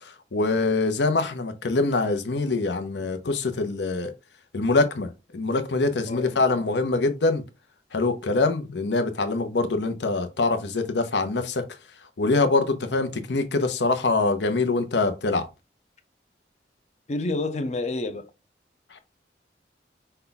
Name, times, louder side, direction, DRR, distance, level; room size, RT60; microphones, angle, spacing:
voice 1, 0.0-4.1 4.5-7.4 7.9-11.6 12.2-15.5 18.9-19.0, left 3 dB, 80° left, 0.7 m, -24 dB
voice 2, 6.0-6.4 17.1-18.3, left 2 dB, 40° left, 0.5 m, -29 dB
5.4 x 2.3 x 3.9 m
head